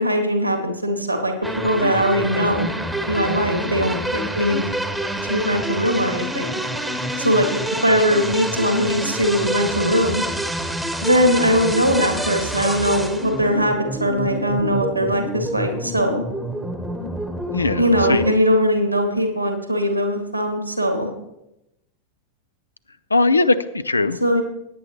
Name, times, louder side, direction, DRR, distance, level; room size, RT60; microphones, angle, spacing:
voice 1, 0.0-2.7 3.1-4.6 5.2-6.6 7.2-10.2 11.0-16.2 17.8-21.1 24.2-24.4, equal, 90° right, 5 dB, 1.8 m, -20 dB
sound 1, 1.4-18.3, right 1 dB, 5° right, 1.1 m, -27 dB
voice 2, 23.1-24.2, left 3 dB, 80° left, 14 dB, 0.5 m, -20 dB
17.0 x 9.8 x 3.0 m, 0.88 s
figure-of-eight pair, 90°, 0 cm